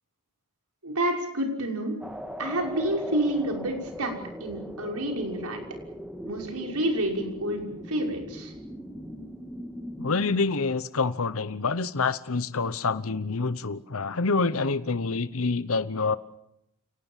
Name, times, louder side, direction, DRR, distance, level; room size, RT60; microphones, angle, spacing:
voice 1, 0.8-2.0 2.4-4.1 4.4-5.6 6.2-8.5, right 1 dB, 85° right, 2 dB, 6.0 m, -29 dB
sound 1, 2.0-10.4, equal, 5° right, 2.1 m, -39 dB
voice 2, 10.0-16.2, left 4 dB, 65° left, 14 dB, 0.9 m, -27 dB
30.0 x 19.0 x 7.4 m, 0.78 s
head